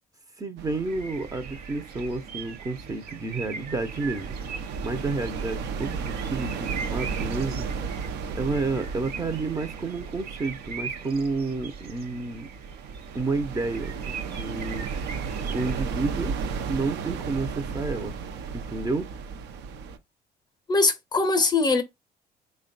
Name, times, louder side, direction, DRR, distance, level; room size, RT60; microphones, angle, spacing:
voice 1, 0.4-7.7 8.4-12.5 13.1-14.9 15.5-16.3 16.7-18.2 18.5-19.1, right 3 dB, 20° right, 0.5 m, -30 dB
sound 1, 0.6-20.0, right 5 dB, 80° right, 0.6 m, -35 dB
sound 2, 0.8-15.8, right 6 dB, 65° right, 1.0 m, -42 dB
voice 2, 20.7-21.8, left 3 dB, 25° left, 0.6 m, -21 dB
3.5 x 2.2 x 3.8 m
cardioid pair, 110°, 17 cm